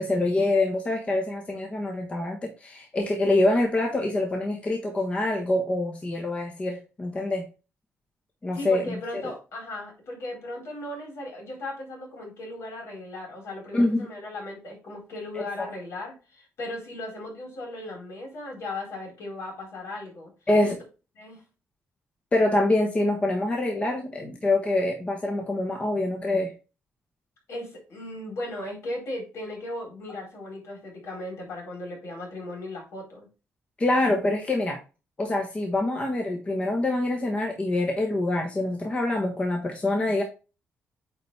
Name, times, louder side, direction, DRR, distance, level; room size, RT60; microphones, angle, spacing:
voice 1, 0.0-7.4 8.4-9.2 13.7-14.0 15.4-15.7 20.5-20.8 22.3-26.5 33.8-34.8 35.2-40.2, left 2 dB, 25° left, 1 dB, 1.2 m, -25 dB
voice 2, 8.5-20.3 20.6-20.8 21.2-21.4 27.5-33.3, left 1 dB, 70° left, 0 dB, 4.1 m, -37 dB
9.1 x 4.2 x 3.4 m, 0.32 s
cardioid pair, 145°, 5 cm